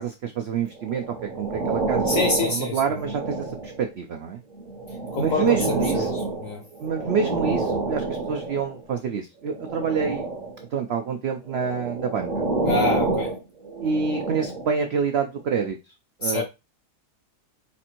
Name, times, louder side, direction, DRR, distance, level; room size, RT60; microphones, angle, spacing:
voice 1, 0.0-2.2 2.5-4.4 5.2-6.1 6.8-10.3 10.7-12.4 13.8-15.8 16.2-16.4, right 6 dB, 85° right, 0.5 m, -27 dB
sound 1, 0.8-3.9 4.5-8.8 9.5-10.6 11.5-14.8 15.5-15.7, right 3 dB, 40° right, 0.7 m, -28 dB
voice 2, 2.1-2.8 5.1-6.6 12.6-13.3 16.2-16.4, left 3 dB, 65° left, 1.0 m, -26 dB
4.3 x 2.5 x 4.3 m
omnidirectional pair, 1.7 m